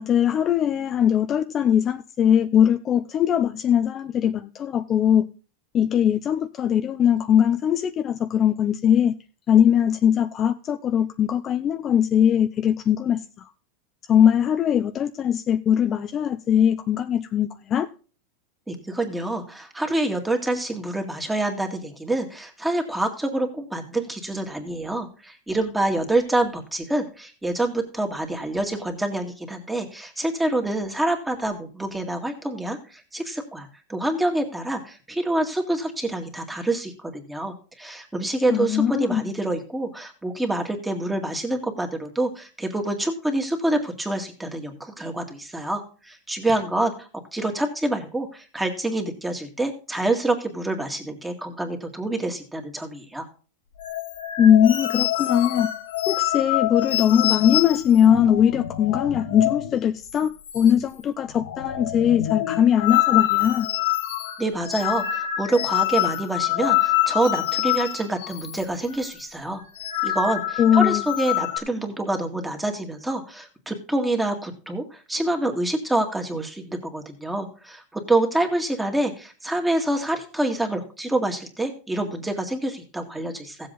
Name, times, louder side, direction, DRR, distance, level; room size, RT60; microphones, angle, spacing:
voice 1, 0.0-5.3 5.7-9.2 9.5-13.5 14.1-17.9 38.5-39.2 54.4-55.7 56.1-63.7 70.6-71.0, left 9 dB, 30° left, 0.5 m, -20 dB
voice 2, 18.7-53.3 64.4-69.6 70.0-83.7, right 2 dB, 5° right, 2.0 m, -27 dB
sound 1, 53.8-59.8 60.0-60.2 60.5-61.0 61.3-68.6 68.9-69.1 69.6-71.6, left 14 dB, 80° left, 1.2 m, -26 dB
15.5 x 7.5 x 3.9 m
supercardioid pair, 135°, 0 cm